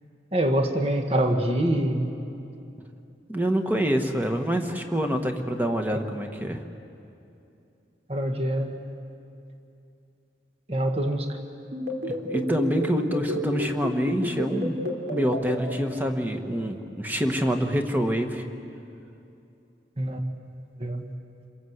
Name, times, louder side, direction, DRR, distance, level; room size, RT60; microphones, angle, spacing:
voice 1, 0.3-2.1 5.9-6.0 8.1-8.8 10.7-11.3 20.0-20.2 20.8-21.0, right 1 dB, 35° right, 5 dB, 1.5 m, -25 dB
voice 2, 3.3-6.6 12.1-14.8 15.1-18.4, equal, 10° right, 4 dB, 1.4 m, -26 dB
sound 1, 11.7-15.6, right 1 dB, 60° right, 3.7 m, -29 dB
28.0 x 22.0 x 8.0 m, 2.7 s
head